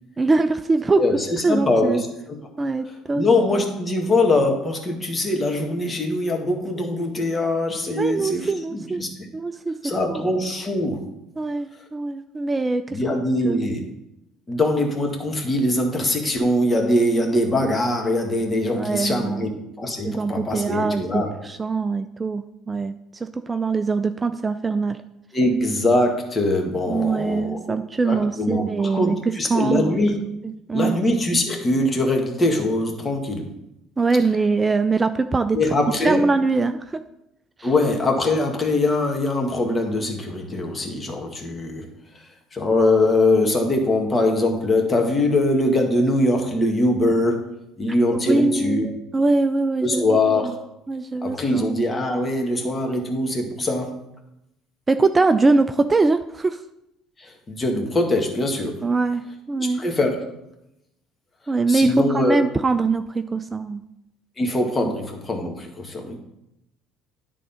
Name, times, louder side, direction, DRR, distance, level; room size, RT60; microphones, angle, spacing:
voice 1, 0.2-1.0 1.4-2.0 2.6-3.2 3.5-3.6 8.0-9.0 9.3-9.8 10.1-10.2 11.4-13.6 18.8-19.5 20.0-25.0 26.9-30.0 30.4-31.0 34.0-35.6 36.0-37.0 37.6-37.7 48.2-48.9 49.1-50.0 50.4-50.5 50.9-51.7 54.9-56.6 58.8-59.8 61.5-63.8 64.8-64.9 66.1-66.2, right 3 dB, 25° right, 9 dB, 0.4 m, -23 dB
voice 2, 0.9-2.4 3.1-9.1 9.8-11.1 12.9-13.8 14.5-19.5 19.8-21.3 25.3-27.8 28.0-30.2 30.7-33.5 35.5-36.3 37.6-41.9 42.5-47.5 47.8-48.9 49.8-50.5 51.2-53.9 57.2-58.8 59.6-60.2 61.7-62.4 64.4-66.2, left 2 dB, 25° left, 2 dB, 1.8 m, -22 dB
10.0 x 3.6 x 5.6 m, 0.86 s
hypercardioid pair, 70°, 0 cm